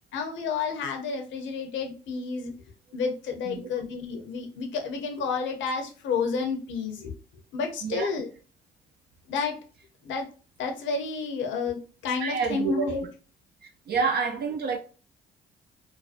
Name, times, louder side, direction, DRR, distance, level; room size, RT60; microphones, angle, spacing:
voice 1, 0.1-2.5 2.9-7.1 7.5-8.3 9.3-9.6 10.0-10.3 10.6-13.0 13.9-14.0, left 5 dB, 65° left, 0.6 m, -30 dB
voice 2, 12.2-13.1 13.9-14.8, right 5 dB, 50° right, 0.5 m, -28 dB
2.4 x 2.1 x 2.4 m
hypercardioid pair, 50°, 21 cm